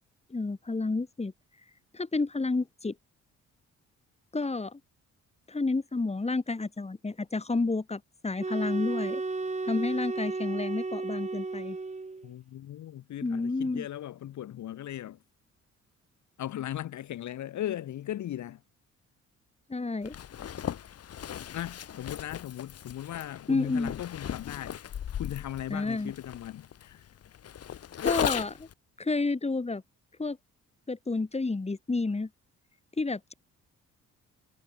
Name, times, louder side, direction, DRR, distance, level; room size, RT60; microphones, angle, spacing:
voice 1, 0.3-1.3 1.9-2.9 4.3-4.8 5.5-9.2 9.6-11.8 13.2-13.9 19.7-20.1 23.5-23.9 25.7-26.1 28.0-28.7 29.0-29.8 30.2-30.4 30.9-32.3 33.0-33.3, left 3 dB, 20° left, 5.7 m, -30 dB
sound 1, 8.4-12.3, right 3 dB, 25° right, 5.1 m, -33 dB
voice 2, 12.2-15.2 16.4-18.6 21.5-24.8 25.2-27.1, left 12 dB, 70° left, 2.0 m, -38 dB
Zipper (clothing), 20.0-28.7, left 9 dB, 55° left, 1.4 m, -37 dB
cardioid pair, 90°, 30 cm